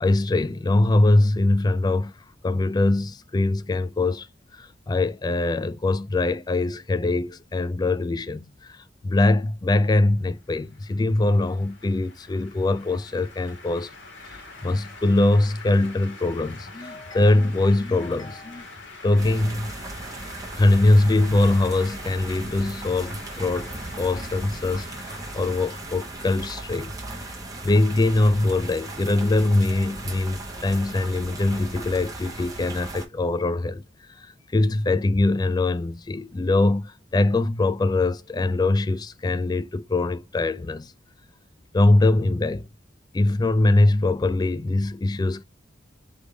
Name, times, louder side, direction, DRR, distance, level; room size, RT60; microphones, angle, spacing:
voice 1, 0.0-2.1 2.4-4.3 4.5-13.9 14.6-18.7 19.0-19.7 20.6-24.9 25.3-26.9 27.6-33.8 34.2-34.3 34.5-40.9 41.7-42.6 43.1-45.4, left 2 dB, 20° left, 0.3 m, -22 dB
sound 1, 10.4-27.1, left 3 dB, 65° left, 1.7 m, -45 dB
sound 2, 19.2-33.0, right 2 dB, 20° right, 1.0 m, -37 dB
3.4 x 3.4 x 3.8 m
head